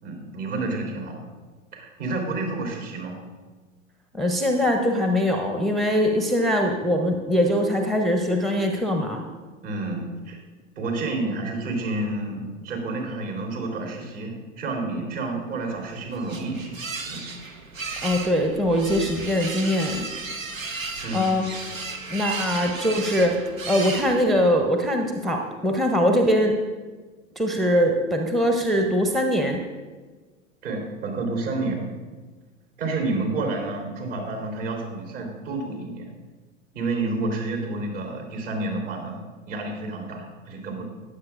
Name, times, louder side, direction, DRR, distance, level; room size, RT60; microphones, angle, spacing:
voice 1, 0.0-1.2 1.7-3.2 9.6-10.4 10.8-16.7 17.1-17.2 21.0-21.3 30.6-31.8 32.8-36.1 36.7-39.2 39.5-40.8, right 2 dB, 65° right, 1 dB, 3.5 m, -29 dB
voice 2, 4.1-9.2 18.0-20.1 21.1-21.4 22.1-26.5 27.4-29.6, equal, ahead, 3 dB, 0.6 m, -22 dB
sound 1, 15.7-24.6, right 3 dB, 85° right, 1.0 m, -34 dB
19.0 x 7.6 x 2.5 m, 1.4 s
figure-of-eight pair, 95°, 39 cm